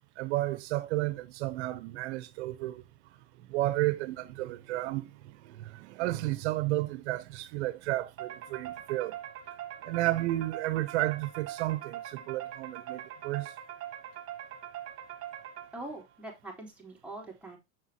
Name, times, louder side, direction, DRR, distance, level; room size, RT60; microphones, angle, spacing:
voice 1, 0.2-2.8 3.5-9.2 9.8-13.5, right 17 dB, 85° right, 0.8 m, -32 dB
sound 1, 8.2-16.0, right 11 dB, 45° right, 1.9 m, -42 dB
voice 2, 15.7-17.6, right 2 dB, 5° right, 3.8 m, -43 dB
7.0 x 5.6 x 2.8 m
supercardioid pair, 110°, 33 cm